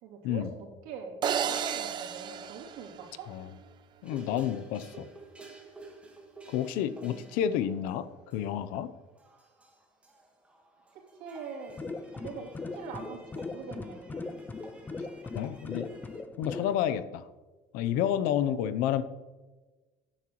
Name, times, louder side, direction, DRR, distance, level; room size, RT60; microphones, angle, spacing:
voice 1, 0.0-3.3 6.7-7.3 11.2-11.8 12.1-14.4, right 5 dB, 85° right, -1 dB, 2.9 m, -43 dB
sound 1, 1.2-3.6, right 8 dB, 35° right, 0.6 m, -33 dB
voice 2, 4.0-5.1 6.5-8.9 15.3-15.9 16.4-17.2 17.7-19.0, left 10 dB, 90° left, 13 dB, 0.7 m, -30 dB
sound 2, 4.0-16.2, right 4 dB, 10° right, 1.5 m, -53 dB
sound 3, 11.7-16.8, left 3 dB, 15° left, 0.4 m, -39 dB
14.5 x 10.0 x 3.1 m, 1.2 s
cardioid pair, 170°, 14 cm